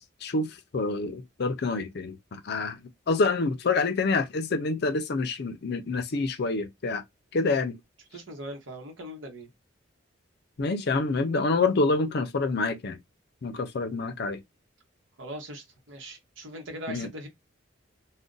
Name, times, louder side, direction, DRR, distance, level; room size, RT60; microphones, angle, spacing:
voice 1, 0.2-2.8 3.1-7.0 7.3-7.8 10.6-13.0 13.4-14.4 16.9-17.1, left 3 dB, 55° left, 0.5 m, -27 dB
voice 2, 8.1-9.5 15.2-17.3, right 1 dB, 65° right, 0.9 m, -40 dB
2.5 x 2.1 x 3.7 m
head